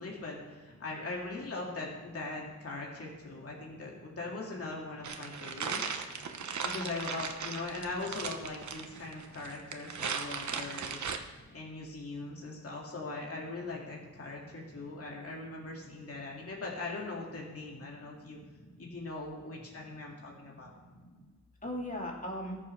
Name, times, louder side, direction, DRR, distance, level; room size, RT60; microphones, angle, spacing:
voice 1, 0.0-6.0 6.6-11.1 11.5-18.4 18.8-20.7, left 3 dB, 55° left, -2 dB, 2.2 m, -40 dB
sound 1, 5.0-11.2, right 5 dB, 75° right, 1.0 m, -37 dB
voice 2, 14.4-15.2 17.9-18.9 20.1-21.3 21.6-22.6, equal, 30° left, -2 dB, 2.8 m, -43 dB
19.5 x 7.3 x 3.3 m, 1.5 s
wide cardioid pair, 115°, 29 cm